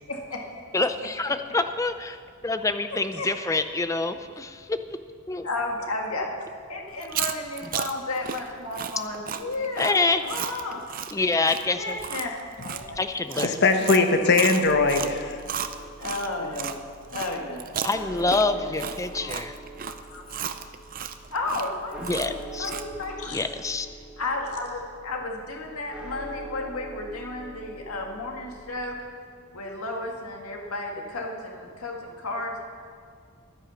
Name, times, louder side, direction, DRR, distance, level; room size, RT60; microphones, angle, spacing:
voice 1, 0.1-0.4 0.7-0.8 3.2-3.6 5.4-10.0 10.2-10.8 11.7-13.0 13.7-13.9 16.0-16.8 17.1-17.6 18.5-18.9 19.1-19.4 19.9-20.2 21.3-23.4 24.2-29.0 29.5-32.7, left 2 dB, 80° left, 0 dB, 1.9 m, -33 dB
voice 2, 0.7-2.2 2.4-4.8 5.3-5.5 9.8-10.2 11.1-12.0 13.0-13.6 17.8-19.6 22.1-22.7 23.3-23.9, left 3 dB, 15° left, 9 dB, 0.5 m, -26 dB
Chewing mastication, 6.9-16.8 17.1-23.1, right 8 dB, 40° right, 0.5 m, -34 dB
voice 3, 13.4-15.4, left 3 dB, 50° left, 6 dB, 1.0 m, -20 dB
sound 1, 14.6-28.6, equal, 5° right, 1.7 m, -42 dB
11.0 x 10.0 x 7.1 m, 2.1 s
head